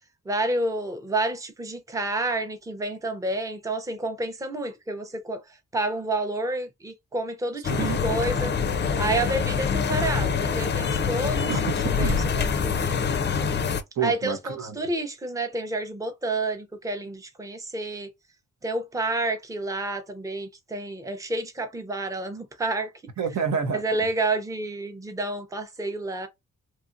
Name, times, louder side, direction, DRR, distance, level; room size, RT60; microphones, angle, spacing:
voice 1, 0.3-5.4 5.7-8.5 9.0-11.5 11.9-13.0 13.3-13.5 14.0-18.1 18.6-22.9 23.7-26.3, right 2 dB, 10° right, 0.6 m, -29 dB
sound 1, 7.6-13.8, left 6 dB, 35° left, 0.4 m, -25 dB
voice 2, 7.7-8.0 11.5-12.2 14.0-14.8 23.2-23.8, right 6 dB, 70° right, 0.8 m, -28 dB
2.9 x 2.3 x 2.5 m
cardioid pair, 85°, 30 cm